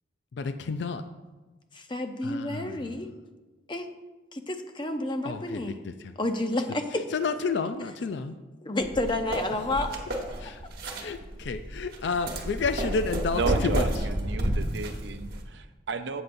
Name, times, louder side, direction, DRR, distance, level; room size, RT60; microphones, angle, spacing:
voice 1, 0.7-1.0 5.3-5.4 7.1-8.2 11.1-11.2 11.5-13.8, left 4 dB, 65° left, 0.4 m, -29 dB
voice 2, 1.7-3.1 3.7-3.9 4.3-5.8 6.2-7.0 8.6-10.2, left 1 dB, 25° left, 0.7 m, -30 dB
sound 1, 8.8-15.4, right 1 dB, 50° right, 1.2 m, -31 dB
voice 3, 13.3-16.2, right 4 dB, 70° right, 0.6 m, -33 dB
13.5 x 7.9 x 2.6 m
head